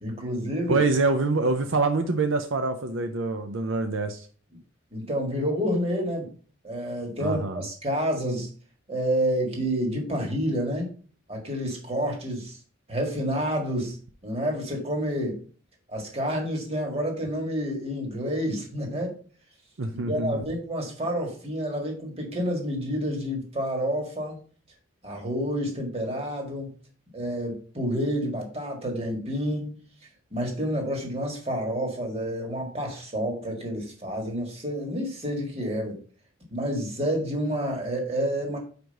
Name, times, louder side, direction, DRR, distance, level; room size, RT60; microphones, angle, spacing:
voice 1, 0.0-0.8 4.9-6.3 6.6-8.5 8.9-10.9 11.3-12.6 12.9-14.0 14.2-15.4 15.9-19.2 20.1-24.4 25.0-26.7 27.1-29.8 30.3-36.0 36.5-38.6, equal, 30° right, 1 dB, 1.7 m, -29 dB
voice 2, 0.7-4.3 7.2-7.6 19.8-20.4, right 3 dB, 75° right, 6 dB, 0.6 m, -25 dB
5.1 x 4.7 x 5.2 m, 0.42 s
head